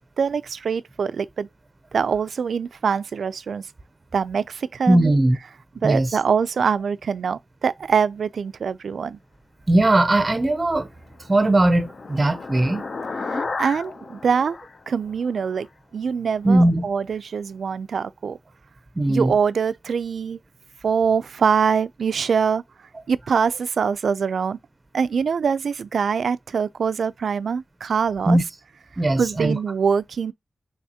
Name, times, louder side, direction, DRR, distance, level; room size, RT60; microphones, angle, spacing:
voice 1, 0.2-1.5 1.9-3.7 4.1-5.1 5.8-9.2 13.3-14.6 14.9-15.7 15.9-18.4 19.1-20.4 20.8-22.6 23.1-24.6 24.9-28.4 29.2-30.3, right 6 dB, 90° right, 0.3 m, -23 dB
voice 2, 4.9-5.4 5.8-6.1 9.7-10.9 11.3-12.9 16.4-16.9 19.0-19.3 28.3-28.4 29.0-29.6, right 1 dB, 20° right, 0.5 m, -19 dB
sound 1, 10.9-15.6, left 4 dB, 50° left, 0.5 m, -34 dB
5.5 x 3.3 x 2.8 m
wide cardioid pair, 170°, 0 cm